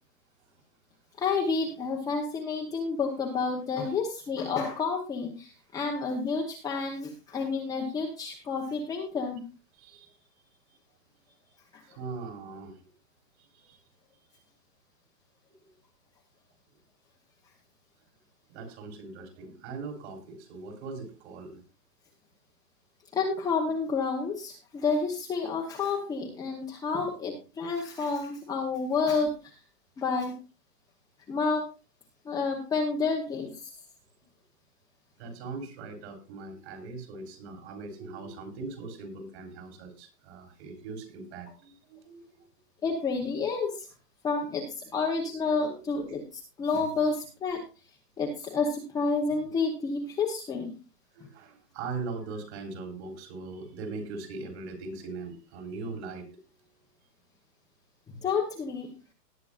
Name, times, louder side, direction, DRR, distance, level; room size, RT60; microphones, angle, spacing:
voice 1, 1.2-9.4 23.1-29.4 30.0-30.3 31.3-31.6 32.2-33.6 42.8-43.9 44.2-47.6 48.2-50.7 58.1-58.9, left 4 dB, 5° left, -2 dB, 0.9 m, -30 dB
voice 2, 9.7-10.8 11.2-11.3 11.8-12.8 13.4-13.8 14.3-14.4 15.6-15.7 18.5-21.6 28.8-28.9 35.2-42.5 45.2-45.4 51.1-56.5, right 3 dB, 40° right, 6 dB, 3.5 m, -41 dB
18.5 x 8.9 x 2.5 m, 0.30 s
hypercardioid pair, 150°, 49 cm